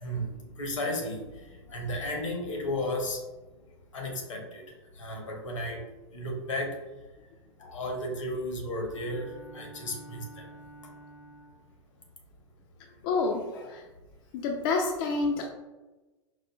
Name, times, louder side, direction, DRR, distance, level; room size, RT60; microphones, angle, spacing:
voice 1, 0.6-1.2 1.7-3.2 3.9-4.6 5.0-5.8 6.1-6.7 7.7-9.3 9.5-10.4, left 1 dB, 80° left, 1 dB, 0.9 m, -33 dB
Bowed string instrument, 8.7-11.8, right 1 dB, 10° right, 0.6 m, -50 dB
voice 2, 13.0-13.8 14.3-15.5, left 4 dB, 50° left, 1 dB, 0.4 m, -29 dB
4.5 x 2.3 x 2.2 m, 1.1 s
hypercardioid pair, 100°, 16 cm